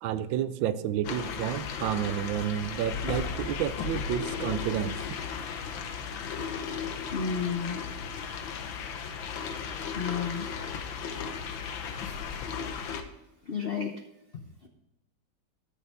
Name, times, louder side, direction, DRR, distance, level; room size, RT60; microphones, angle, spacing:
voice 1, 0.0-5.0, right 10 dB, 85° right, 14 dB, 1.4 m, -30 dB
sound 1, 1.0-13.0, left 6 dB, 90° left, 1.7 m, -35 dB
voice 2, 7.1-7.8 9.9-10.5 13.5-13.9 14.3-14.7, left 6 dB, 60° left, 3 dB, 0.6 m, -32 dB
13.5 x 6.8 x 3.4 m, 0.98 s
omnidirectional pair, 2.1 m